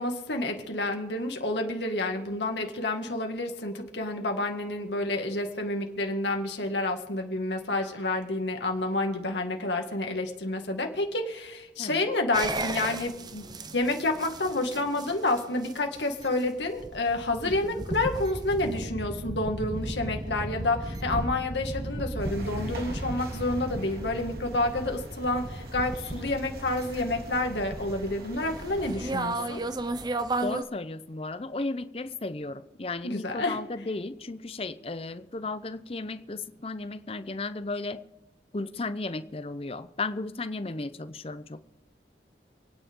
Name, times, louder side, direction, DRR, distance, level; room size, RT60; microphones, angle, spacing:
voice 1, 0.0-13.4 13.7-29.6 33.0-33.6, left 2 dB, 85° left, 3 dB, 2.2 m, -29 dB
sound 1, 12.3-30.6, right 2 dB, 25° right, 0.6 m, -35 dB
voice 2, 17.4-17.9 30.4-38.0 38.5-41.6, left 3 dB, 35° left, 13 dB, 0.7 m, -35 dB
sound 2, 22.2-29.0, right 1 dB, 60° right, 2.7 m, -43 dB
29.0 x 9.7 x 3.8 m, 1.0 s
head